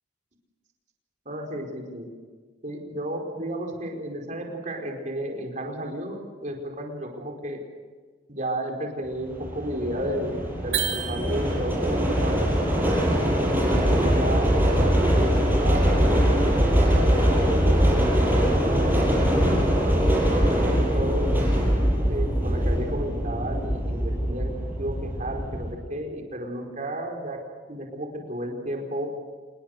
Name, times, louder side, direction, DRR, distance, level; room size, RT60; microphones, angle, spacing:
voice 1, 1.2-2.1 2.6-7.6 8.3-12.5 13.4-17.0 17.2-19.8 20.4-21.4 22.1-24.5 24.8-27.4 27.7-29.1, right 1 dB, 40° right, 2 dB, 4.8 m, -33 dB
sound 1, 9.2-25.7, equal, 10° right, 6.5 m, -22 dB
sound 2, 10.7-11.9, right 9 dB, 70° right, 3.4 m, -30 dB
27.0 x 21.0 x 6.7 m, 1.4 s
head